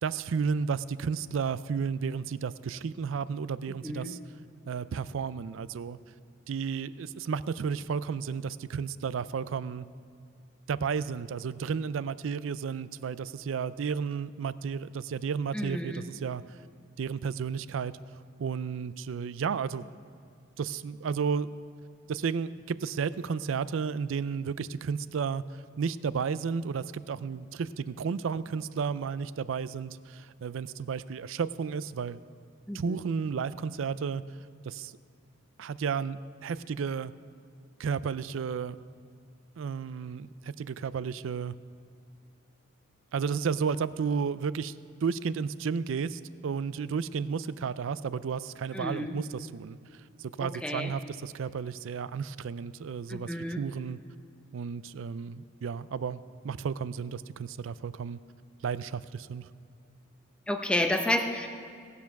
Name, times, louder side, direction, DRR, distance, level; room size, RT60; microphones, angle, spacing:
voice 1, 0.0-4.2 4.7-6.0 6.5-9.9 10.7-16.4 17.0-17.9 18.4-19.8 20.6-21.5 22.1-25.4 25.8-32.2 32.7-34.2 34.6-34.9 35.6-37.1 37.8-38.8 39.6-41.5 43.1-44.8 45.0-49.8 50.2-54.0 54.5-58.2 58.6-59.5, right 6 dB, 75° right, 16 dB, 0.4 m, -32 dB
voice 2, 3.8-4.1 15.5-16.1 32.7-33.0 48.7-49.2 50.4-50.9 53.1-53.6 60.5-61.5, left 1 dB, 5° left, 5 dB, 0.7 m, -31 dB
17.5 x 7.0 x 5.9 m, 2.3 s
head